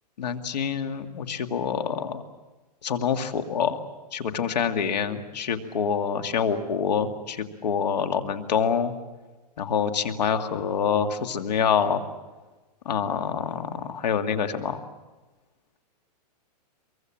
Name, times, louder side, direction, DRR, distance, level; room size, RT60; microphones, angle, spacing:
voice 1, 0.2-2.2 2.8-3.8 4.1-8.9 9.6-12.0 12.9-14.8, left 7 dB, 80° left, 7 dB, 2.2 m, -26 dB
24.0 x 23.5 x 7.7 m, 1.2 s
hypercardioid pair, 170°, 21 cm